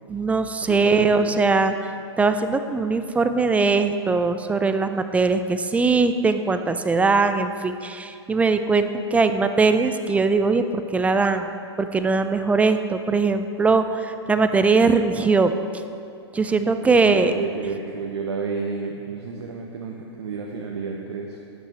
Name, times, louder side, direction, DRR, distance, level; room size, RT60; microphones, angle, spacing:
voice 1, 0.1-1.7 2.2-10.6 10.9-15.6 16.3-17.3, right 4 dB, 10° right, 9 dB, 0.4 m, -21 dB
voice 2, 0.6-1.4 16.9-21.4, right 5 dB, 75° right, 0 dB, 0.9 m, -31 dB
12.0 x 9.1 x 3.4 m, 2.5 s
hypercardioid pair, 120°, 15 cm